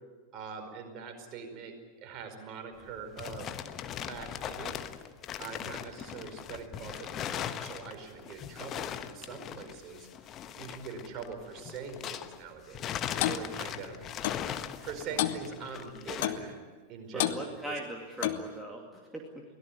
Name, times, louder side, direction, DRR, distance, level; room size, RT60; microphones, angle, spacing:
voice 1, 0.3-3.5 3.9-4.8 5.4-14.0 14.8-16.6 16.9-17.7, right 5 dB, 35° right, 4 dB, 5.0 m, -43 dB
sound 1, 2.8-12.4 12.7-16.4, left 10 dB, 30° left, 1.2 m, -39 dB
Clock, 13.2-13.4 14.2-14.4 15.2-15.4 16.2-16.5 17.2-17.4 18.2-18.5, left 14 dB, 50° left, 1.2 m, -29 dB
voice 2, 17.1-19.4, right 1 dB, 5° right, 0 dB, 2.5 m, -40 dB
23.0 x 18.0 x 9.7 m, 1.4 s
figure-of-eight pair, 90°, 0 cm